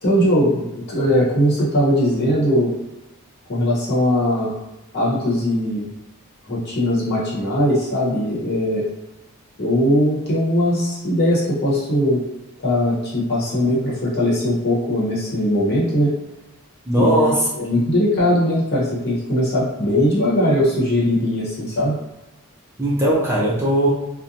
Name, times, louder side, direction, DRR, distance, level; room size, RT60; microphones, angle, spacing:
voice 1, 0.0-2.7 3.5-4.5 4.9-5.9 6.5-8.8 9.6-12.2 12.6-16.1 17.0-22.0, equal, 50° left, -7 dB, 1.0 m, -20 dB
voice 2, 16.9-17.5 22.8-23.9, right 1 dB, 10° right, -6 dB, 0.5 m, -18 dB
2.6 x 2.1 x 2.6 m, 0.97 s
head